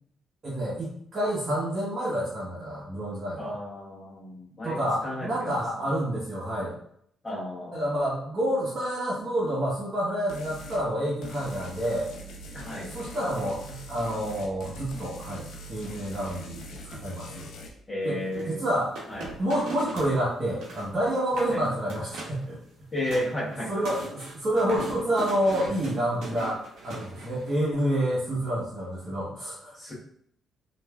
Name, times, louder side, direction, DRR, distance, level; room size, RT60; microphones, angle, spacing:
voice 1, 0.4-3.6 4.6-6.8 7.7-12.1 12.9-17.5 18.0-18.2 18.5-18.9 19.4-22.6 23.7-29.8, right 1 dB, 40° right, -7 dB, 0.9 m, -28 dB
voice 2, 3.4-5.8 7.2-7.9 12.5-12.9 17.9-18.6 19.1-19.3 21.5-21.6 22.9-23.9 29.7-29.9, left 1 dB, 30° left, -5 dB, 1.1 m, -33 dB
sound 1, 10.3-10.8 11.2-17.7, equal, 80° left, 0.5 m, -42 dB
sound 2, 18.3-20.1 20.4-20.9 21.2-21.6 21.9-22.4 22.8-27.5, right 2 dB, 85° right, 0.8 m, -40 dB
3.1 x 2.5 x 2.2 m, 0.69 s
cardioid pair, 90°, 0 cm